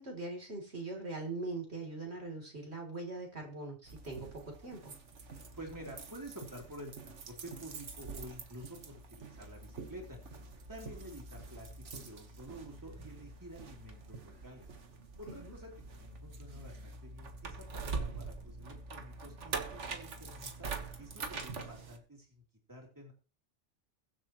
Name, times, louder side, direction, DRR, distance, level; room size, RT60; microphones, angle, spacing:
voice 1, 0.0-4.9 15.3-15.5, right 2 dB, 65° right, 1 dB, 3.6 m, -42 dB
sound 1, 3.9-22.0, right 4 dB, 85° right, 1.8 m, -45 dB
voice 2, 5.5-10.2 10.7-14.7 15.2-20.7 21.0-22.4 22.7-23.1, equal, 15° right, 0 dB, 3.4 m, -50 dB
22.5 x 7.6 x 3.1 m, 0.35 s
omnidirectional pair, 1.2 m